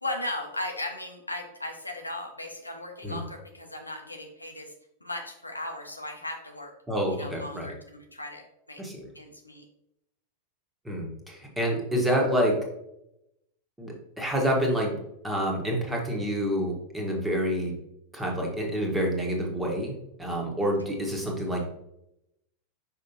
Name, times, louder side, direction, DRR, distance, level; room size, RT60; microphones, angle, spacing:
voice 1, 0.0-4.7 5.0-6.7 7.1-8.8 9.1-9.7, left 1 dB, 85° left, 3 dB, 0.8 m, -37 dB
voice 2, 6.9-7.7 8.8-9.1 10.8-12.6 13.8-15.0 15.2-17.7 18.1-21.6, equal, 10° right, 0 dB, 1.6 m, -28 dB
5.7 x 5.6 x 2.9 m, 0.83 s
figure-of-eight pair, 90°, 0 cm